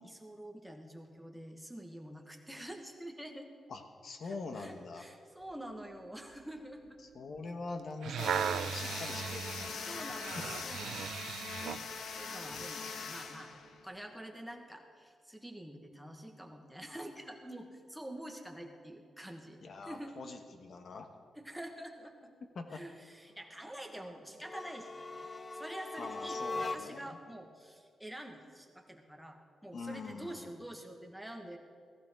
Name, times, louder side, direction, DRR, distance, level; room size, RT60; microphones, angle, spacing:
voice 1, 0.0-3.5 4.2-7.0 9.8-13.5 13.8-20.1 21.4-22.3 22.7-25.3 25.5-31.6, right 1 dB, ahead, 2 dB, 1.3 m, -47 dB
voice 2, 3.7-5.1 7.1-10.0 19.6-21.1 22.5-22.8 26.0-27.2 29.7-30.5, left 3 dB, 50° left, 6 dB, 1.2 m, -44 dB
sound 1, 7.8-11.9 12.5-12.7, right 9 dB, 90° right, 0.3 m, -37 dB
Tesla ascending-m, 8.2-14.1, left 5 dB, 75° left, 0.9 m, -42 dB
sound 2, 24.4-27.2, left 3 dB, 25° left, 0.4 m, -40 dB
16.0 x 14.5 x 3.6 m, 2.2 s
wide cardioid pair, 140°, 0 cm